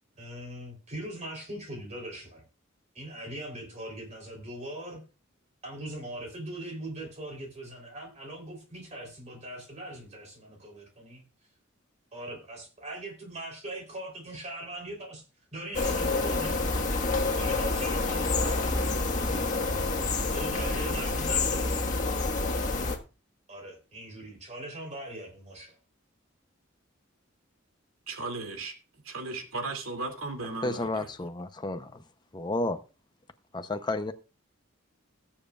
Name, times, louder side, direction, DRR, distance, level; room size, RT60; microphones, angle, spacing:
voice 1, 0.1-2.4 2.9-5.0 5.6-11.2 12.1-15.2 15.5-16.9 17.4-19.1 20.3-21.9 23.5-25.8, right 1 dB, 35° right, 1 dB, 3.5 m, -41 dB
sound 1, 15.7-23.0, left 3 dB, 40° left, 1.6 m, -28 dB
voice 2, 28.1-28.7 29.0-30.9, right 3 dB, 90° right, 4 dB, 2.6 m, -35 dB
voice 3, 30.5-32.0 32.3-32.8 33.5-34.1, left 2 dB, 20° left, 8 dB, 0.7 m, -31 dB
20.5 x 7.3 x 2.4 m, 0.33 s
head